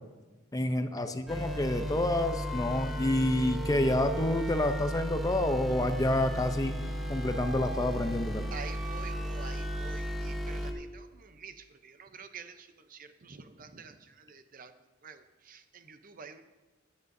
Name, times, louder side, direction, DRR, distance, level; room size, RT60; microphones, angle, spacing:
voice 1, 0.5-6.7 7.1-8.5, left 1 dB, 20° left, 8 dB, 0.6 m, -28 dB
sound 1, 1.3-10.7, equal, ahead, 1.2 m, -34 dB
voice 2, 8.5-14.7 15.0-16.4, right 5 dB, 45° right, 9 dB, 0.7 m, -48 dB
17.0 x 10.5 x 2.7 m, 1.2 s
head